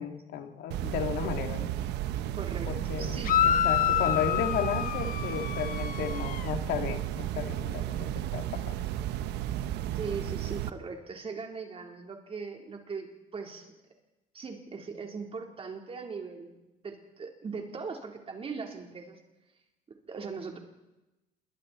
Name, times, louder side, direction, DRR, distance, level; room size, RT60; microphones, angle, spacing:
voice 1, 0.0-1.7 2.7-8.8, left 8 dB, 75° left, 5 dB, 2.4 m, -34 dB
sound 1, 0.7-10.7, right 12 dB, 85° right, 1.0 m, -33 dB
voice 2, 2.3-2.7 3.0-3.4 9.9-13.7 14.3-16.6 16.8-19.2 20.1-20.6, right 5 dB, 35° right, 2 dB, 3.9 m, -39 dB
sound 2, 3.2-6.5, left 11 dB, 55° left, 1.2 m, -28 dB
28.0 x 23.0 x 4.4 m, 1.0 s
cardioid pair, 110°, 17 cm